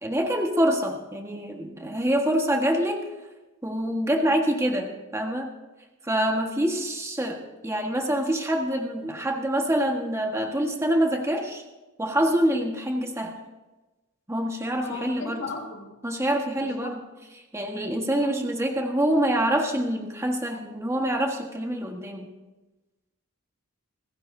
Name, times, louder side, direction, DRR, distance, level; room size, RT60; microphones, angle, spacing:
voice 1, 0.0-3.0 3.6-5.5 6.0-11.6 12.0-13.4 14.3-15.4 16.0-17.0 17.5-22.3, right 1 dB, 15° right, 2 dB, 1.4 m, -26 dB
voice 2, 14.8-15.9 16.6-16.9 17.9-18.4, left 3 dB, 80° left, -1 dB, 4.9 m, -37 dB
27.0 x 15.5 x 2.7 m, 1.1 s
head